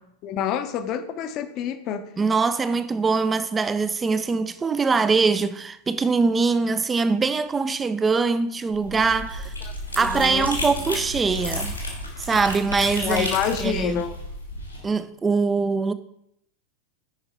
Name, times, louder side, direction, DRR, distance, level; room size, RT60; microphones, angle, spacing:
voice 1, 0.2-2.0 9.9-10.5 13.0-14.1, left 9 dB, 35° left, 0.8 m, -27 dB
voice 2, 2.2-9.5 10.0-11.7 12.2-13.3 13.6-14.0 14.8-15.9, right 4 dB, 15° right, 0.5 m, -23 dB
sound 1, 8.7-14.8, left 1 dB, 85° left, 2.8 m, -32 dB
8.9 x 5.5 x 4.6 m
figure-of-eight pair, 90°, 0 cm